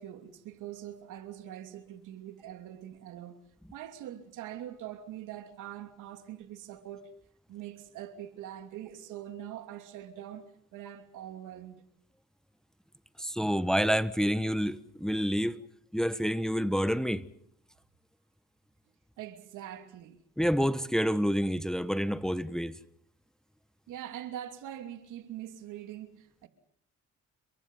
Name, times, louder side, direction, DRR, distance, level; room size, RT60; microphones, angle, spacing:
voice 1, 0.0-3.4 3.7-7.1 7.5-10.5 10.7-11.8 19.2-20.2 23.9-26.5, right 11 dB, 90° right, 2.9 m, -43 dB
voice 2, 13.2-15.6 15.9-17.2 20.4-22.8, equal, ahead, 1.3 m, -28 dB
29.5 x 23.5 x 5.6 m
cardioid pair, 90°, 30 cm